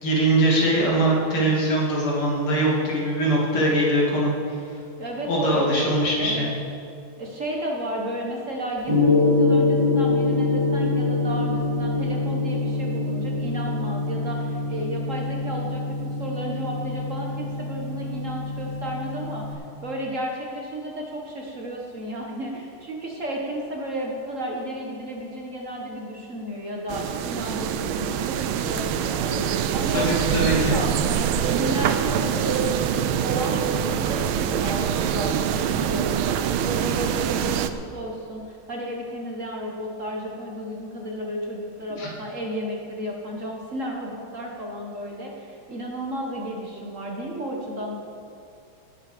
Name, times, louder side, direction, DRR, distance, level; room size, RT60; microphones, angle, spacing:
voice 1, 0.0-4.6 5.2-6.5 29.9-30.7 42.0-42.1, right 1 dB, 80° left, -4 dB, 3.5 m, -22 dB
voice 2, 5.0-6.5 7.2-29.5 29.7-48.0, equal, 40° right, -1 dB, 1.6 m, -33 dB
Gong, 8.9-19.5, left 3 dB, 15° right, 2.5 m, -24 dB
sound 1, 26.9-37.7, right 9 dB, 75° right, 1.4 m, -24 dB
18.0 x 8.0 x 5.1 m, 2.4 s
omnidirectional pair, 2.3 m